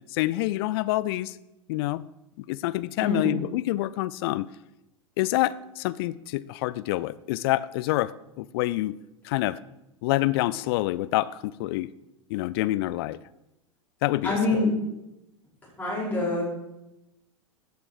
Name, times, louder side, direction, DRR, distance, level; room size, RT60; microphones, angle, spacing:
voice 1, 0.1-1.4 1.7-2.0 2.5-4.5 5.2-8.9 9.2-9.6 10.0-11.9 12.3-13.2 14.0-14.3, left 17 dB, 45° left, 18 dB, 0.4 m, -27 dB
voice 2, 3.0-3.4 14.2-14.7 15.8-16.5, left 2 dB, 10° left, -7 dB, 5.3 m, -25 dB
14.0 x 8.3 x 4.8 m, 0.91 s
figure-of-eight pair, 90°, 17 cm